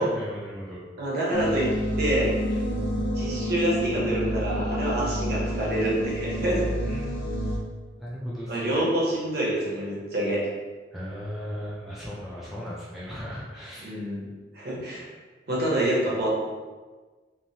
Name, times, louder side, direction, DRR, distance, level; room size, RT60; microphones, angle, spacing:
voice 1, 0.0-0.8 2.5-2.6 6.8-7.1 8.0-8.9 10.9-13.9 14.9-15.1, equal, ahead, -8 dB, 0.4 m, -37 dB
voice 2, 1.0-2.3 3.1-6.8 8.5-10.4 13.8-14.3 14.5-15.1 15.5-16.3, right 1 dB, 55° right, -5 dB, 0.8 m, -27 dB
sound 1, 1.3-7.6, equal, 70° left, 0.8 m, -29 dB
3.1 x 2.1 x 2.7 m, 1.3 s
head